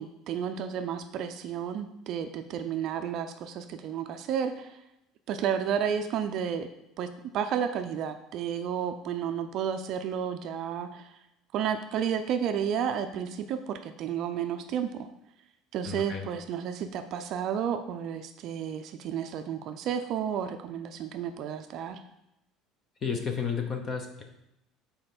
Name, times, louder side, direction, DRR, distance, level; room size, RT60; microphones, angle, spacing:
voice 1, 0.0-4.8 5.3-6.7 7.0-11.1 11.5-15.1 15.7-22.0, right 8 dB, 40° right, 7 dB, 0.4 m, -32 dB
voice 2, 15.8-16.3 23.0-24.2, left 6 dB, 25° left, 4 dB, 0.8 m, -32 dB
5.4 x 4.3 x 6.0 m, 0.86 s
cardioid pair, 180°, 0 cm